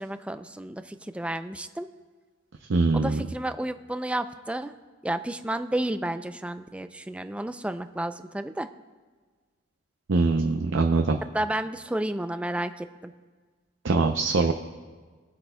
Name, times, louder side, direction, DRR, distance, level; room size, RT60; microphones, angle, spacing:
voice 1, 0.0-1.9 2.9-4.7 5.0-8.7 11.3-13.1, right 1 dB, 5° right, 10 dB, 0.3 m, -31 dB
voice 2, 2.7-3.2 10.1-11.2 13.8-14.5, right 3 dB, 75° right, 4 dB, 0.6 m, -22 dB
23.0 x 7.9 x 2.2 m, 1.5 s
head